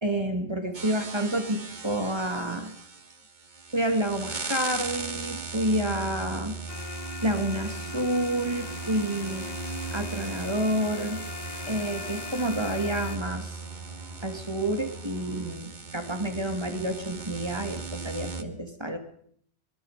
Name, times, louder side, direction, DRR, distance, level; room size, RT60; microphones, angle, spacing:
voice 1, 0.0-2.7 3.7-6.6 7.2-9.5 9.9-11.2 11.7-13.6 14.2-19.0, right 1 dB, 25° right, 6 dB, 2.5 m, -29 dB
sound 1, 0.7-18.4, right 4 dB, 45° right, 1.5 m, -38 dB
sound 2, 6.7-13.2, left 5 dB, 45° left, 1.0 m, -40 dB
sound 3, 8.3-15.5, left 1 dB, 70° right, 4.0 m, -49 dB
24.0 x 21.0 x 5.1 m, 0.65 s
omnidirectional pair, 1.1 m